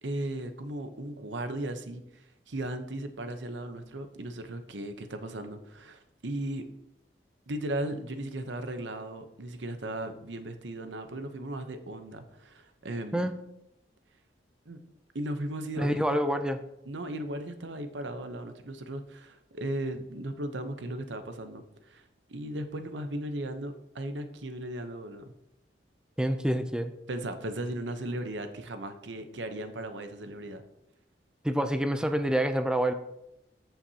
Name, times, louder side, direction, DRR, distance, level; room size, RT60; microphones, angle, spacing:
voice 1, 0.0-6.7 7.5-13.3 14.7-14.8 15.1-16.2 16.9-25.3 27.1-30.6, right 1 dB, 85° right, 8 dB, 0.8 m, -37 dB
voice 2, 15.8-16.6 26.2-26.9 31.4-32.9, equal, 5° right, 8 dB, 0.4 m, -27 dB
14.5 x 5.8 x 2.8 m, 0.86 s
head